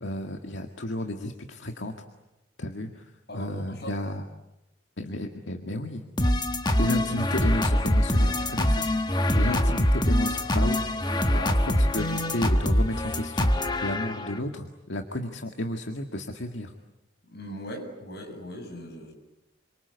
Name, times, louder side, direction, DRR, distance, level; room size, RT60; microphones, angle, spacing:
voice 1, 0.0-2.0 2.6-3.1 3.3-4.2 5.0-6.0 6.8-8.9 9.3-10.8 11.3-13.5 13.8-16.7, left 1 dB, 75° left, 5 dB, 1.9 m, -32 dB
voice 2, 3.3-3.9 6.6-7.0 9.4-9.7 11.1-12.1 17.3-19.1, equal, 55° left, 3 dB, 7.7 m, -40 dB
sound 1, 6.2-14.4, left 1 dB, 20° left, 1.5 m, -24 dB
28.0 x 25.0 x 8.2 m, 0.93 s
head